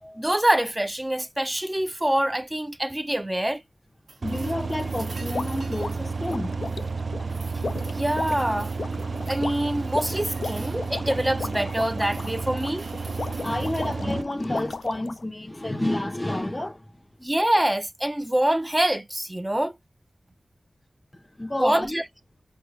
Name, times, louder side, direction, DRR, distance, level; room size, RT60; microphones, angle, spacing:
voice 1, 0.2-3.6 7.9-8.7 9.3-12.8 17.2-19.7 21.6-22.0, right 1 dB, 15° right, 0.5 m, -25 dB
sound 1, 4.1-6.9 7.3-9.6 10.1-10.9 11.4-14.0 14.5-14.9 16.9-17.0, right 3 dB, 90° right, 1.2 m, -48 dB
voice 2, 4.2-6.8 13.1-16.9 21.4-22.0, left 1 dB, 25° left, 0.7 m, -30 dB
sound 2, 4.2-14.2, right 4 dB, 70° right, 0.3 m, -31 dB
sound 3, 5.3-15.2, left 4 dB, 75° left, 0.3 m, -36 dB
4.5 x 2.3 x 2.9 m
wide cardioid pair, 55°, 0 cm